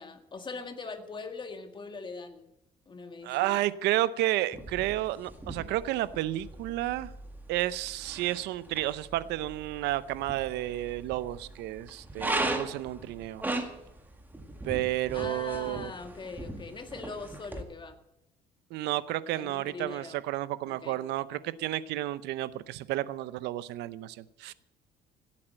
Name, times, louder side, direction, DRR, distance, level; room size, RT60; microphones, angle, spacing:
voice 1, 0.0-2.5 2.9-3.6 15.1-18.0 19.3-20.2 20.7-21.0, left 4 dB, 30° left, 7 dB, 1.8 m, -41 dB
voice 2, 3.2-7.1 7.5-13.4 14.6-15.9 18.7-24.5, right 15 dB, 85° right, 16 dB, 0.7 m, -31 dB
sound 1, 4.5-17.6, right 2 dB, 10° right, 2.0 m, -39 dB
16.5 x 8.6 x 7.6 m, 0.85 s
cardioid pair, 110°, 17 cm